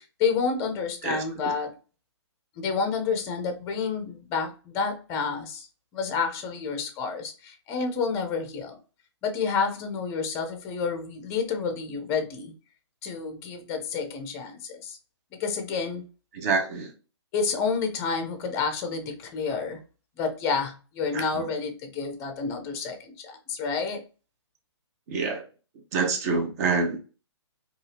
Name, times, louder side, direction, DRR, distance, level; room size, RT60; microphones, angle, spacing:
voice 1, 0.2-1.7 2.6-5.7 5.9-8.8 9.2-12.5 13.0-15.0 15.4-16.0 17.3-19.8 20.2-24.0, left 5 dB, 20° left, 0.5 m, -29 dB
voice 2, 16.3-16.9 21.1-21.3 25.1-25.4 25.9-27.0, right 4 dB, 35° right, 0.7 m, -26 dB
2.6 x 2.4 x 3.3 m
hypercardioid pair, 145°, 15 cm